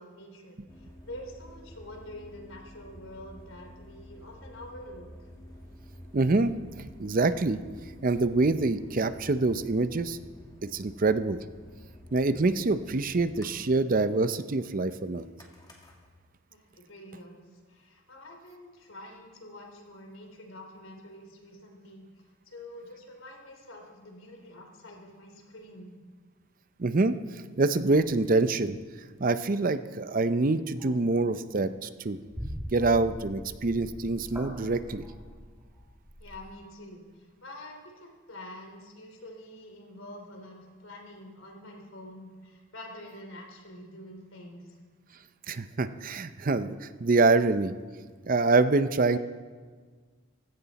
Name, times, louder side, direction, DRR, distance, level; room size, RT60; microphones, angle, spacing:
voice 1, 0.0-5.3 16.5-26.0 36.2-44.8, left 1 dB, 85° left, 2 dB, 3.2 m, -47 dB
sound 1, 0.7-16.1, left 1 dB, 20° left, 2.2 m, -50 dB
voice 2, 6.1-6.5 7.0-7.6 8.0-10.2 10.6-11.4 12.1-15.3 26.8-27.2 27.6-28.8 29.2-32.2 32.7-35.0 45.5-47.7 48.2-49.2, right 3 dB, 45° right, 12 dB, 0.6 m, -25 dB
sound 2, 29.5-29.6 30.1-30.4 30.8-31.1 31.5-36.5, equal, 15° right, 2.5 m, -43 dB
17.5 x 16.0 x 4.1 m, 1.5 s
head